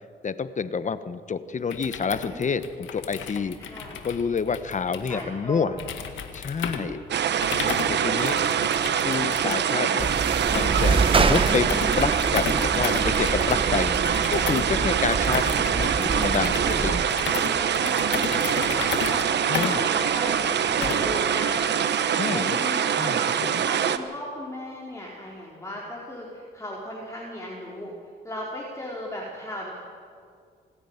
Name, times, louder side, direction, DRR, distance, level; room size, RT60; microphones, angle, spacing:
voice 1, 0.2-3.6 4.0-5.7 6.3-7.0 7.9-8.4 9.0-10.1 10.5-11.7 12.0-13.9 14.3-15.5 15.7-16.5 16.8-17.0 19.5-19.8 22.1-22.6 23.0-23.6, left 5 dB, 40° left, 13 dB, 1.1 m, -28 dB
sound 1, 1.6-21.2, left 7 dB, 85° left, 1.8 m, -35 dB
voice 2, 3.6-4.0 5.1-5.9 7.3-7.7 11.2-11.6 16.6-17.0 17.6-22.0 22.3-23.2 23.6-27.9 28.2-29.7, left 1 dB, 15° left, -4 dB, 4.2 m, -36 dB
sound 2, 7.1-24.0, right 8 dB, 65° right, 1.1 m, -24 dB
sound 3, 10.0-17.1, right 4 dB, 30° right, 0.9 m, -27 dB
26.5 x 10.0 x 9.7 m, 2.2 s
cardioid pair, 75°, 19 cm